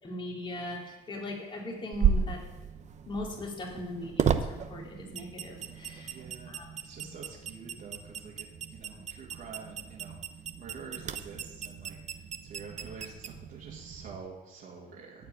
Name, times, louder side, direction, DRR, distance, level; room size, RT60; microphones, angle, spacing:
voice 1, 0.0-2.4 3.1-6.1 6.5-6.7 7.0-7.1 8.9-9.0, left 1 dB, 30° left, 0 dB, 2.6 m, -39 dB
sound 1, 1.9-14.2, right 7 dB, 45° right, 0.8 m, -34 dB
voice 2, 5.7-10.2 10.6-15.3, right 5 dB, 60° right, -5 dB, 2.3 m, -47 dB
14.0 x 4.6 x 8.9 m, 1.1 s
cardioid pair, 110°, 17 cm